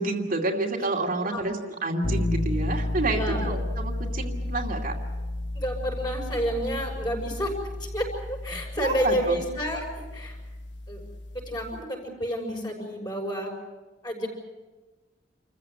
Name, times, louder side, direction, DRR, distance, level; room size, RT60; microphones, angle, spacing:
voice 1, 0.0-5.0 8.8-9.4, right 2 dB, 50° right, 0 dB, 2.6 m, -29 dB
sound 1, 2.0-11.9, left 1 dB, 75° left, 1.3 m, -32 dB
voice 2, 3.1-3.5 5.5-7.5 7.8-8.1 8.4-10.4 10.9-11.0 11.3-13.5 14.0-14.3, equal, 25° left, 1 dB, 6.5 m, -30 dB
27.5 x 15.0 x 9.5 m, 1.2 s
head